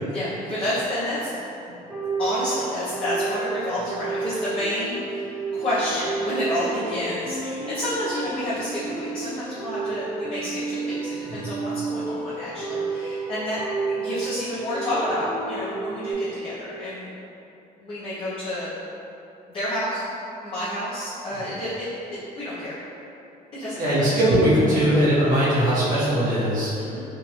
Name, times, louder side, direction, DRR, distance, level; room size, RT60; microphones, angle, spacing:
voice 1, 0.1-1.3 1.7-1.8 2.2-13.6 13.9-17.1 17.8-18.7 19.5-20.0 20.4-21.9 22.3-22.7 23.5-23.9 26.8-27.0, left 1 dB, 35° left, -11 dB, 0.8 m, -29 dB
sound 1, 1.7-16.1, right 3 dB, 5° right, 1.3 m, -31 dB
voice 2, 11.2-11.5 21.3-21.4 23.8-26.7, equal, 50° right, -10 dB, 1.3 m, -20 dB
3.6 x 2.6 x 3.0 m, 2.8 s
cardioid pair, 110°, 17 cm